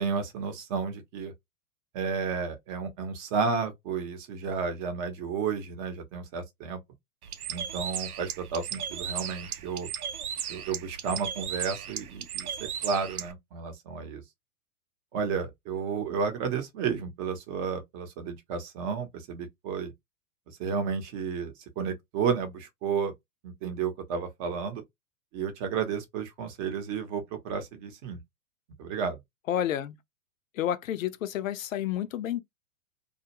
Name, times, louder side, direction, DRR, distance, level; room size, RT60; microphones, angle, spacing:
voice 1, 0.0-1.3 1.9-6.8 7.5-9.9 10.5-14.2 15.1-19.9 20.6-23.1 23.4-24.8 25.3-28.2 28.8-29.2, right 6 dB, 30° right, 0.8 m, -32 dB
Bird, 7.2-13.3, right 8 dB, 75° right, 0.6 m, -36 dB
voice 2, 29.5-30.0 30.6-32.4, left 11 dB, 65° left, 0.6 m, -30 dB
2.4 x 2.1 x 2.8 m
hypercardioid pair, 110°, 44 cm